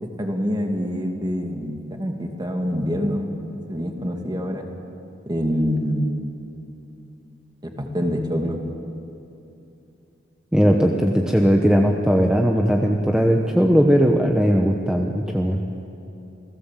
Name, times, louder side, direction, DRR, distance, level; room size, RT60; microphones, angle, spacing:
voice 1, 0.0-3.3 3.7-4.6 5.3-6.1 7.6-8.6, equal, 20° right, 3 dB, 2.1 m, -25 dB
voice 2, 10.5-15.6, equal, 5° right, 1 dB, 1.1 m, -18 dB
28.5 x 17.5 x 7.6 m, 2.8 s
head